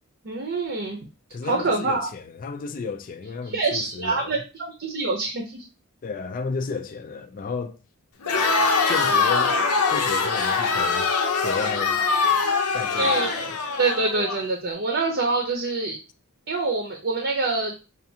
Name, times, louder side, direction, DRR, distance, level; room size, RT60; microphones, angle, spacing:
voice 1, 0.2-1.0 1.4-2.1 3.4-5.6 13.0-13.3 13.8-16.0 16.5-17.7, right 3 dB, 50° right, 0.7 m, -25 dB
voice 2, 1.3-4.4 6.0-7.8 8.3-8.5 8.9-9.6 9.9-11.1 11.4-12.0 12.7-13.5, left 4 dB, 40° left, 0.3 m, -33 dB
Crowd, 8.2-14.4, left 4 dB, 90° left, 0.7 m, -23 dB
5.6 x 2.5 x 2.7 m
head